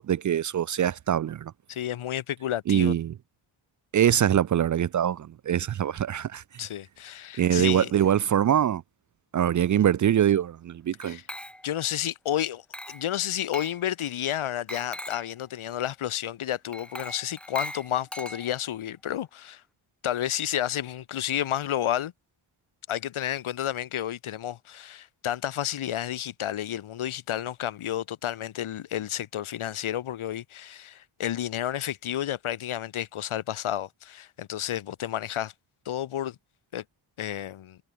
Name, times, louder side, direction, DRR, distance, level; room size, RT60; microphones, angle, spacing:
voice 1, 0.0-1.5 2.7-3.1 3.9-6.4 7.4-8.8 9.3-11.2, right 10 dB, 40° right, 0.4 m, -23 dB
voice 2, 1.7-2.9 6.6-7.9 11.1-11.2 11.6-19.6 20.0-22.1 22.9-35.5 35.9-36.4 36.7-36.8 37.2-37.8, left 11 dB, 80° left, 2.0 m, -31 dB
Glass, 11.0-11.9 12.7-13.1 13.5-13.8 14.7-15.3 16.7-18.8, equal, ahead, 0.9 m, -40 dB
cardioid pair, 85°, 48 cm